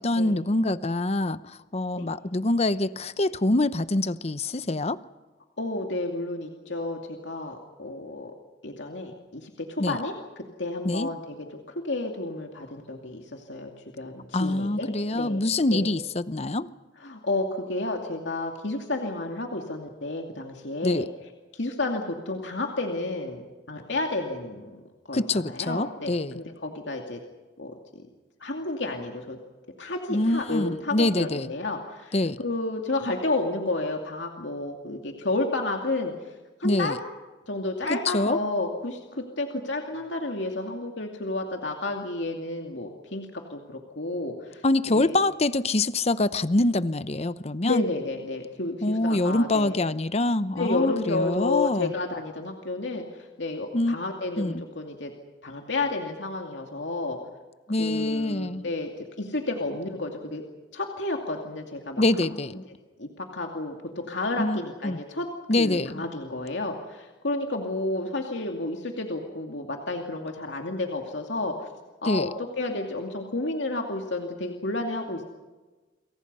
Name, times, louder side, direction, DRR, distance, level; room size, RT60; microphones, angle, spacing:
voice 1, 0.0-1.4 1.7-5.0 9.8-10.0 10.8-11.1 14.3-16.7 20.8-21.1 25.1-26.4 30.1-31.5 32.1-32.4 36.6-37.0 37.9-38.4 44.6-47.9 48.8-51.9 53.7-54.0 54.4-54.6 57.7-58.6 62.0-62.6 64.4-65.0 65.5-66.0 72.0-72.3, left 2 dB, 35° left, 14 dB, 0.8 m, -25 dB
voice 2, 5.6-8.3 8.6-11.4 11.7-13.7 14.0-15.4 15.7-15.9 17.0-21.1 21.5-23.4 23.7-24.8 25.1-27.2 27.6-28.0 28.4-29.4 29.8-36.1 36.6-37.0 37.5-44.6 44.9-45.2 47.6-49.8 50.5-53.0 53.4-55.1 55.4-57.2 57.8-58.9 59.2-60.4 60.7-62.4 63.0-65.3 65.6-71.7 72.0-75.2, left 2 dB, 75° left, 2 dB, 2.5 m, -31 dB
29.0 x 23.5 x 5.5 m, 1.2 s
head